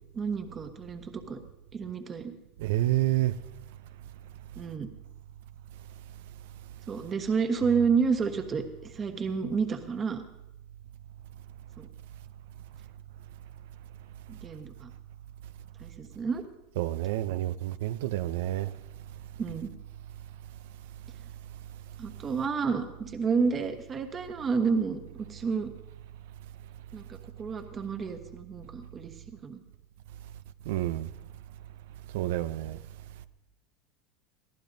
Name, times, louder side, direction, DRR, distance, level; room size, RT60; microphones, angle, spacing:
voice 1, 0.1-1.4 1.7-2.4 4.6-4.9 6.9-10.2 11.8-11.9 14.3-14.9 15.8-16.4 19.4-19.7 22.0-25.7 26.9-29.6, right 5 dB, 30° right, 1.2 m, -30 dB
voice 2, 2.6-3.3 16.8-18.7 30.7-31.1 32.1-32.8, right 15 dB, 80° right, 0.5 m, -28 dB
22.5 x 15.0 x 2.7 m
supercardioid pair, 120°, 0 cm